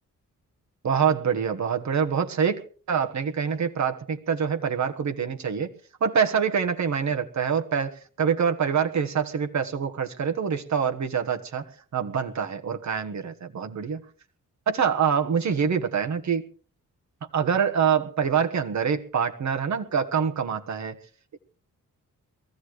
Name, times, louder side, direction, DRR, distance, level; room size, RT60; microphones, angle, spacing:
voice 1, 0.8-2.6 2.9-5.7 6.0-11.6 11.9-14.0 14.7-16.5 17.3-21.0, right 7 dB, 60° right, 5 dB, 1.4 m, -25 dB
22.5 x 15.0 x 3.2 m, 0.41 s
wide cardioid pair, 160°, 33 cm